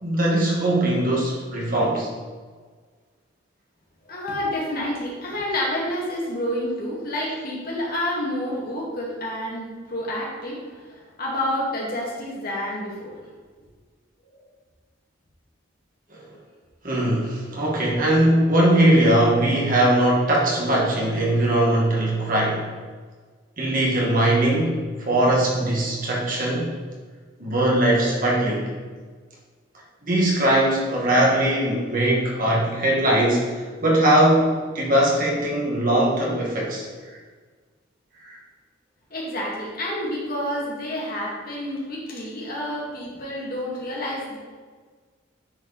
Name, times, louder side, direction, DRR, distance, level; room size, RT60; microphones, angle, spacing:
voice 1, 0.0-2.1 16.1-16.2 16.8-22.6 23.6-26.8 27.4-28.7 30.0-37.2 38.2-38.4, right 1 dB, 45° right, -3 dB, 2.0 m, -20 dB
voice 2, 4.1-13.1 39.1-44.4, left 1 dB, 50° left, -4 dB, 2.3 m, -29 dB
9.7 x 4.8 x 4.3 m, 1.5 s
head